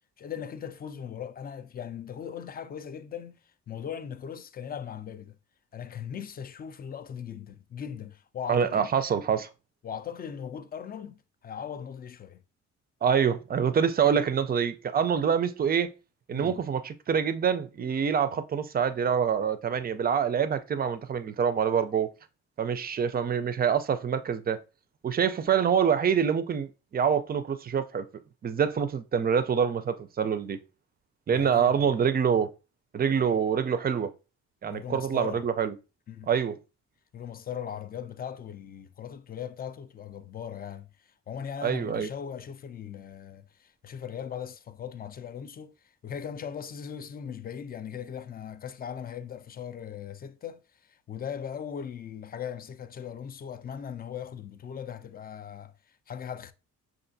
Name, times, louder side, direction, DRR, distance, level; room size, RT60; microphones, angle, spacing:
voice 1, 0.2-3.4 3.7-5.4 5.7-8.9 9.8-12.4 16.3-16.6 31.3-32.0 34.6-35.5 36.1-36.3 37.1-56.5, left 8 dB, 30° left, 0.4 m, -39 dB
voice 2, 8.5-9.5 13.0-15.9 16.3-22.1 22.6-24.6 25.0-28.1 28.4-30.6 31.3-32.5 32.9-34.1 34.6-35.7 36.3-36.6 41.6-42.1, right 7 dB, 30° right, 0.4 m, -26 dB
5.4 x 2.5 x 2.6 m
cardioid pair, 90°, 30 cm